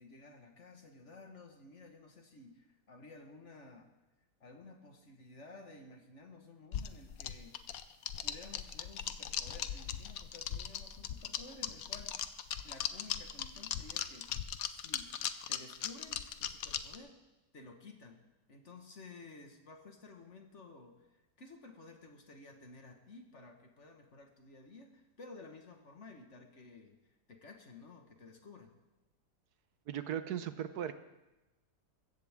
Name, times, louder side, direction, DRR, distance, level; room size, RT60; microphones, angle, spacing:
voice 1, 0.0-3.9 4.4-7.6 8.2-12.2 12.6-14.3 14.6-15.1 15.5-17.2 17.5-18.2 18.5-28.7, left 3 dB, 45° left, 4 dB, 1.8 m, -54 dB
sound 1, 6.7-17.0, left 9 dB, 65° left, 1.1 m, -38 dB
voice 2, 29.9-30.9, right 10 dB, 70° right, 11 dB, 1.3 m, -37 dB
21.5 x 15.5 x 3.6 m, 1.0 s
omnidirectional pair, 1.8 m